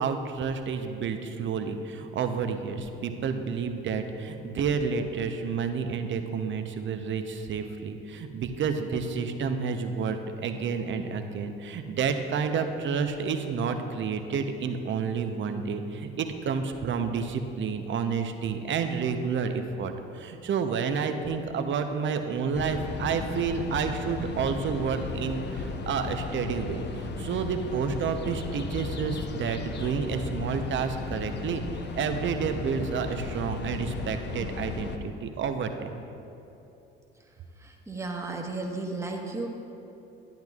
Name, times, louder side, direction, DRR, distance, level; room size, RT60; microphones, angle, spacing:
voice 1, 0.0-31.6 31.9-35.9, right 6 dB, 40° right, 7 dB, 0.8 m, -30 dB
sound 1, 22.5-35.0, left 4 dB, 35° left, 0.8 m, -35 dB
voice 2, 37.6-39.5, right 3 dB, 10° right, 0 dB, 1.3 m, -34 dB
12.0 x 10.5 x 2.4 m, 2.8 s
hypercardioid pair, 60°, 29 cm